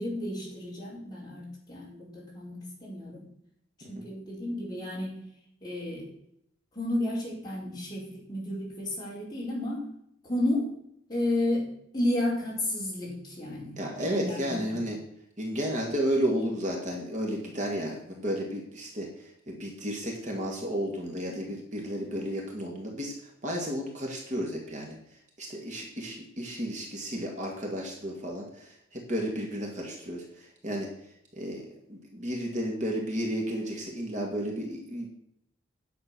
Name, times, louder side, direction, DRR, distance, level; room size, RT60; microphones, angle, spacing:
voice 1, 0.0-3.2 3.9-5.2 5.6-6.1 6.7-9.8 10.2-10.7 11.1-14.8, left 1 dB, 20° left, -5 dB, 4.8 m, -32 dB
voice 2, 13.8-15.0 15.4-35.1, equal, 40° right, 0 dB, 2.2 m, -33 dB
10.0 x 7.4 x 6.2 m, 0.74 s
head